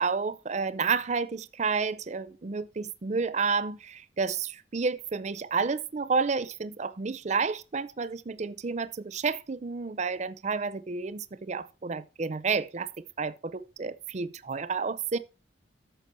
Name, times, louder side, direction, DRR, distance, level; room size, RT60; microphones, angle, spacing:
voice 1, 0.0-15.2, right 5 dB, 35° right, 0.5 m, -30 dB
9.1 x 6.6 x 4.3 m
head